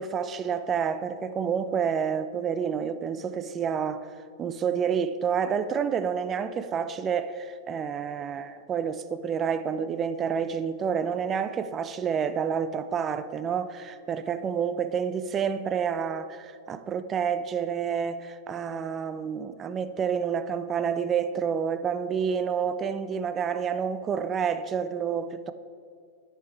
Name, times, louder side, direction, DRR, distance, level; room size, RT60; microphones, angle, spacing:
voice 1, 0.0-4.1 4.4-25.5, right 7 dB, 25° right, 0.5 m, -29 dB
10.5 x 5.6 x 4.5 m
figure-of-eight pair, 105°, 0 cm